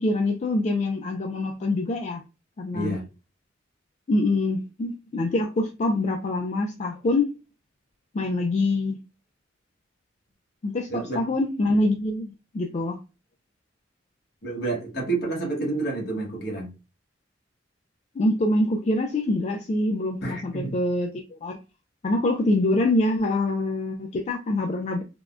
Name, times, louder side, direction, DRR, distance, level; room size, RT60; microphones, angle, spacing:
voice 1, 0.0-2.2 2.6-3.0 4.1-7.3 8.1-9.0 10.6-13.0 18.2-21.6 22.0-25.0, left 2 dB, 35° left, 0.3 m, -25 dB
voice 2, 2.7-3.0 10.9-11.2 14.4-16.7 20.2-20.8, right 3 dB, 60° left, 1.2 m, -29 dB
3.4 x 2.1 x 2.4 m
head